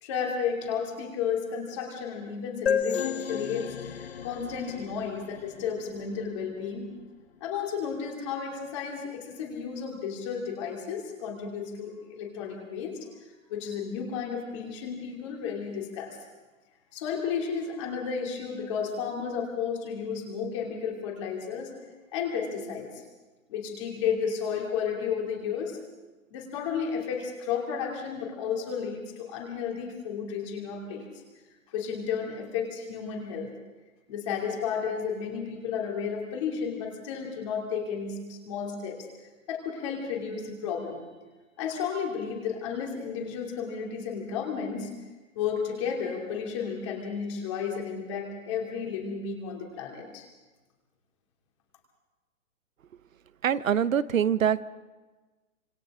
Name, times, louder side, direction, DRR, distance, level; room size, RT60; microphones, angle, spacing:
voice 1, 0.0-6.8 7.4-13.0 13.5-16.2 16.9-21.7 22.1-23.0 23.5-25.8 26.3-31.1 31.7-33.5 34.1-39.0 39.5-41.0 41.6-44.9 45.3-50.3, left 6 dB, 20° left, 0 dB, 2.9 m, -32 dB
sound 1, 2.7-6.2, left 7 dB, 50° left, 1.1 m, -32 dB
voice 2, 53.4-54.6, right 9 dB, 70° right, 16 dB, 1.0 m, -24 dB
27.0 x 26.5 x 3.8 m, 1.2 s
hypercardioid pair, 175°, 41 cm